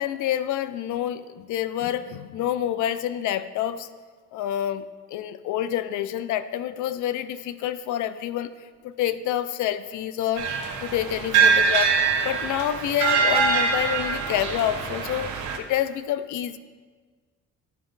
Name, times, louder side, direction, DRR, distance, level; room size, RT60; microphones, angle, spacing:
voice 1, 0.0-3.9 4.3-8.5 8.8-10.5 10.8-11.9 12.2-16.6, left 11 dB, 80° left, 13 dB, 0.5 m, -28 dB
sound 1, 10.4-15.6, right 5 dB, 80° right, 1.0 m, -23 dB
11.0 x 4.8 x 3.9 m, 1.5 s
cardioid pair, 90°, 30 cm